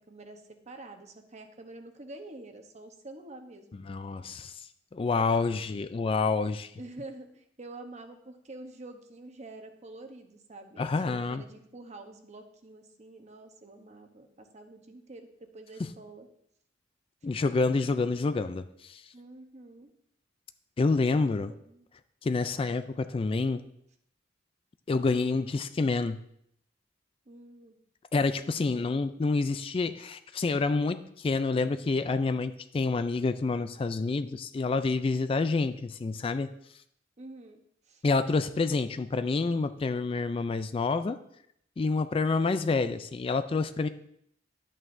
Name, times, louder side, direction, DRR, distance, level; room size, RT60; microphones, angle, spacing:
voice 1, 0.1-3.8 4.2-4.3 6.8-16.3 19.1-19.9 21.1-21.9 27.3-27.8 37.2-37.6 37.9-38.0, right 2 dB, 40° right, 6 dB, 0.9 m, -47 dB
voice 2, 3.7-4.7 4.9-6.7 10.8-11.4 17.2-19.0 20.8-21.5 22.2-23.7 24.9-26.2 28.1-36.5 38.0-41.2 41.8-43.9, left 3 dB, 30° left, 11 dB, 0.3 m, -28 dB
11.0 x 8.5 x 2.6 m, 0.73 s
head